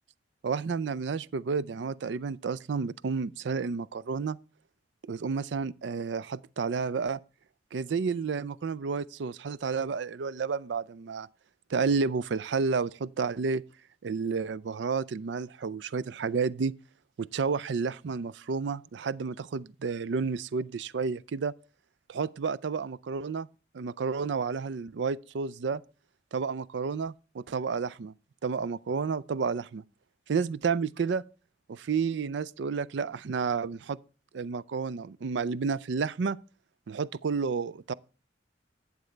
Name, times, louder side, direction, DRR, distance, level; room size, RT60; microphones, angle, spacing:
voice 1, 0.4-4.4 5.0-7.2 7.7-11.3 11.7-13.6 14.0-16.7 17.2-21.5 22.1-23.5 23.7-25.8 26.3-28.1 28.4-29.8 30.3-31.2 31.7-34.0 34.3-36.4 36.9-37.9, right 5 dB, 70° right, 0.4 m, -31 dB
11.5 x 8.4 x 3.2 m
head